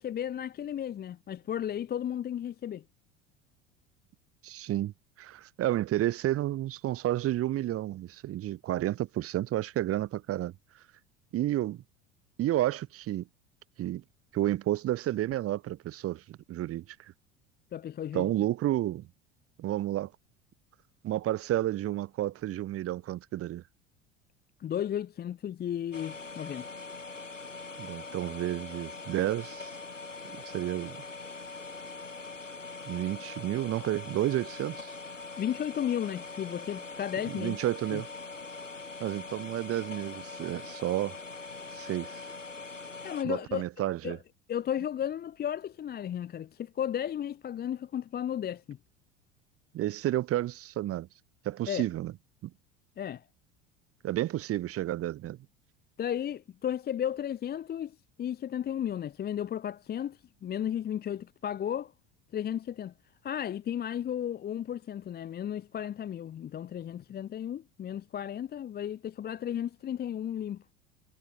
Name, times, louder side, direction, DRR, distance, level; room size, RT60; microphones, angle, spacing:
voice 1, 0.0-2.8 17.7-18.3 24.6-26.6 35.4-37.6 37.9-38.0 43.0-43.6 44.0-44.2 44.5-48.8 51.7-51.9 53.0-53.2 56.0-61.9 62.3-62.9 63.2-70.6, left 10 dB, 25° left, 1.0 m, -34 dB
voice 2, 4.4-4.9 5.2-10.5 11.3-11.8 12.4-13.3 13.8-14.0 14.3-17.1 18.1-19.1 19.6-20.1 21.0-23.6 27.8-29.7 30.2-31.0 32.9-34.9 37.3-38.1 39.0-41.2 41.7-42.3 43.2-44.2 49.7-51.1 51.4-52.1 52.4-52.5 54.0-55.4, right 14 dB, 40° right, 2.0 m, -31 dB
sound 1, 25.9-43.2, left 3 dB, 85° left, 2.7 m, -42 dB
figure-of-eight pair, 70°, 36 cm